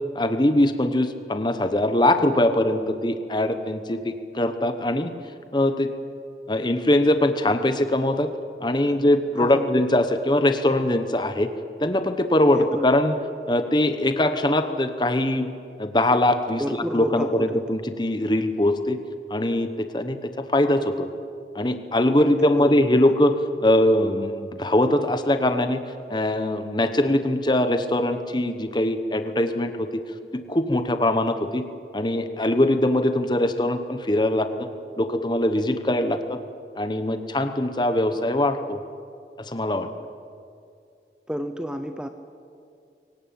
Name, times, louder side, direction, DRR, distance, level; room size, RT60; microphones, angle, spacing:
voice 1, 0.1-5.1 5.5-5.9 6.5-8.3 8.6-11.5 11.8-13.2 13.5-15.5 15.8-16.6 16.9-19.0 19.3-21.1 21.5-25.8 26.1-29.9 30.3-31.6 31.9-34.7 35.0-36.4 36.8-38.8 39.4-39.9, left 1 dB, 25° left, 8 dB, 1.1 m, -22 dB
voice 2, 12.5-12.9 16.6-17.6 22.2-23.0 41.3-42.1, equal, 5° right, 7 dB, 0.8 m, -30 dB
23.0 x 19.0 x 8.8 m, 2.4 s
head